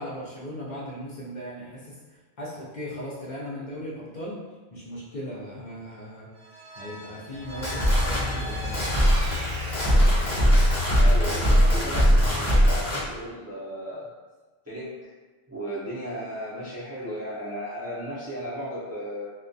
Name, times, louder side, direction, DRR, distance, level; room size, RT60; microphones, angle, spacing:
voice 1, 0.0-1.9 2.4-4.4 4.7-6.3 6.8-9.1, equal, 60° left, -6 dB, 0.6 m, -37 dB
Vehicle, 6.4-12.7, right 1 dB, 80° right, 0.9 m, -41 dB
sound 1, 7.4-13.1, equal, 40° left, 0.9 m, -21 dB
voice 2, 11.0-14.1 14.7-15.1 15.5-19.3, equal, 25° right, -9 dB, 0.3 m, -35 dB
2.2 x 2.2 x 2.5 m, 1.3 s
omnidirectional pair, 1.1 m